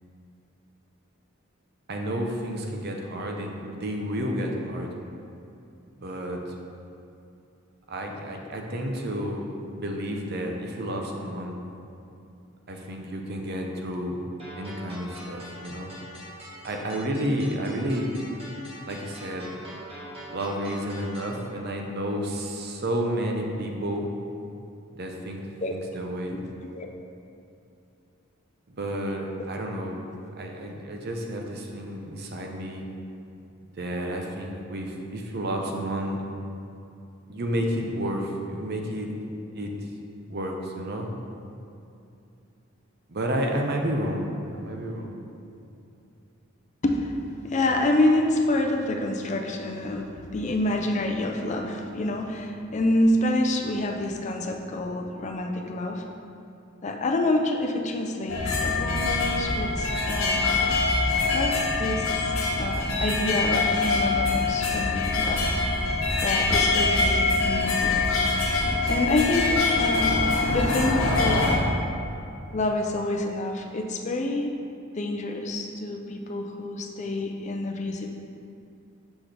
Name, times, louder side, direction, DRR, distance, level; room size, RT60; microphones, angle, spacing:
voice 1, 1.9-4.9 6.0-6.4 7.9-9.5 9.8-11.6 12.7-14.2 14.5-15.9 16.6-18.1 18.9-19.5 20.3-24.1 24.9-26.4 28.7-30.0 30.4-32.8 33.8-36.2 37.3-39.2 39.5-39.7 40.3-41.1 43.1-44.3 44.6-45.2, equal, 50° right, 2 dB, 0.7 m, -31 dB
sound 1, 14.4-21.4, equal, 25° right, 1.5 m, -43 dB
voice 2, 26.3-26.9 46.8-56.0 56.8-60.5 61.3-62.2 62.6-65.4 66.2-68.1 68.9-71.5 72.5-74.6 75.0-78.1, left 1 dB, 35° left, 3 dB, 0.4 m, -27 dB
sound 2, 58.3-71.6, left 3 dB, 75° left, 1.0 m, -24 dB
6.2 x 6.0 x 3.3 m, 2.7 s
head